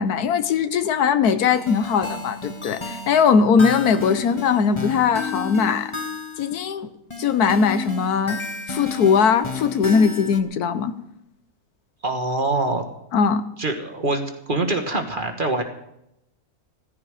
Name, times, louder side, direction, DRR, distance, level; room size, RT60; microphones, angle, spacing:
voice 1, 0.0-5.9 6.4-6.9 7.2-8.4 8.7-10.9 13.1-13.4, left 6 dB, 85° left, 12 dB, 1.4 m, -20 dB
sound 1, 1.5-6.6 7.1-10.4, left 3 dB, 20° left, 1.4 m, -32 dB
voice 2, 12.0-12.8 13.6-15.6, right 2 dB, 35° right, 5 dB, 1.8 m, -24 dB
16.0 x 15.0 x 5.0 m, 0.81 s
omnidirectional pair, 1.6 m